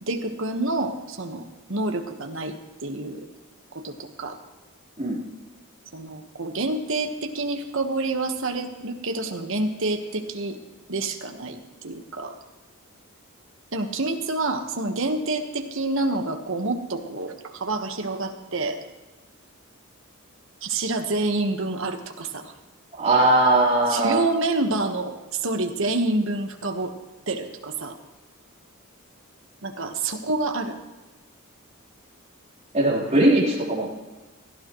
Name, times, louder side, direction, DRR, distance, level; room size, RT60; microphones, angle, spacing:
voice 1, 0.0-2.5 2.8-3.3 3.7-4.4 5.9-10.6 10.9-12.4 13.7-18.8 20.6-22.5 23.9-26.9 27.3-28.0 29.6-30.8, right 2 dB, 60° right, 5 dB, 1.3 m, -28 dB
voice 2, 23.0-24.2 32.7-33.9, right 2 dB, 30° right, -5 dB, 4.0 m, -19 dB
16.5 x 12.5 x 3.1 m, 1.2 s
head